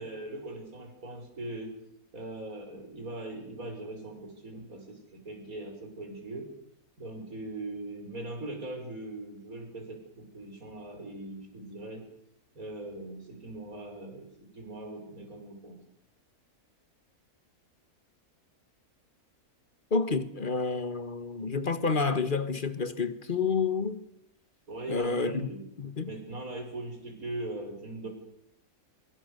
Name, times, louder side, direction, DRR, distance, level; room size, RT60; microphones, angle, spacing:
voice 1, 0.0-1.7 2.1-6.5 7.0-12.0 12.5-15.8 24.7-25.7 26.0-28.1, right 2 dB, 70° right, 6.1 m, -40 dB
voice 2, 19.9-24.0 24.9-25.5 25.8-26.1, left 4 dB, 35° left, 1.6 m, -29 dB
24.5 x 23.0 x 6.8 m
omnidirectional pair, 1.6 m